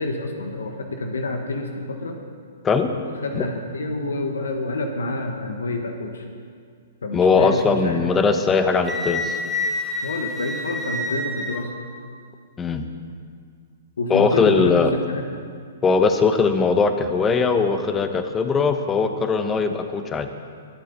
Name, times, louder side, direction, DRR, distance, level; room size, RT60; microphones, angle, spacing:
voice 1, 0.0-2.2 3.2-6.2 7.0-8.3 10.0-11.7 14.0-15.2, left 2 dB, 85° left, 4 dB, 1.4 m, -28 dB
voice 2, 7.1-9.4 12.6-12.9 14.1-14.9 15.8-20.3, left 4 dB, 15° left, 8 dB, 1.0 m, -20 dB
Wind instrument woodwind instrument, 8.8-11.7, left 2 dB, 5° right, 1.4 m, -28 dB
23.5 x 8.4 x 4.0 m, 2.2 s
hypercardioid pair, 130°, 0 cm